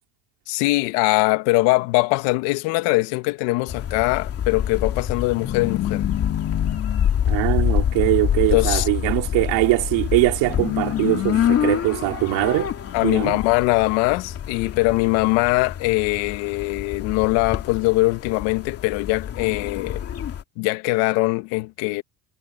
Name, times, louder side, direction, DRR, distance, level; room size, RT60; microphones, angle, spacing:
voice 1, 0.5-6.1 8.5-8.9 12.9-20.0 20.6-22.0, left 22 dB, 65° left, 1.9 m, -21 dB
sound 1, 3.7-20.4, left 9 dB, 30° left, 2.6 m, -26 dB
voice 2, 7.3-12.7 13.0-13.4, right 21 dB, 60° right, 3.8 m, -22 dB
cardioid pair, 165°, 49 cm